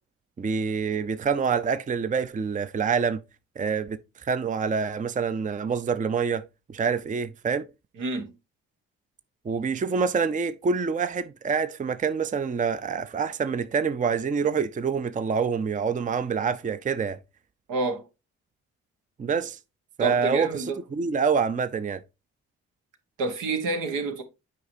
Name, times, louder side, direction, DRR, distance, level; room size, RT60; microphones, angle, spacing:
voice 1, 0.4-3.2 3.6-7.7 9.4-17.2 19.2-19.6 20.0-22.0, right 5 dB, 25° right, 0.5 m, -26 dB
voice 2, 8.0-8.3 17.7-18.0 20.0-20.8 23.2-24.2, right 3 dB, 80° right, 1.3 m, -28 dB
8.2 x 4.8 x 2.7 m
supercardioid pair, 55°, 31 cm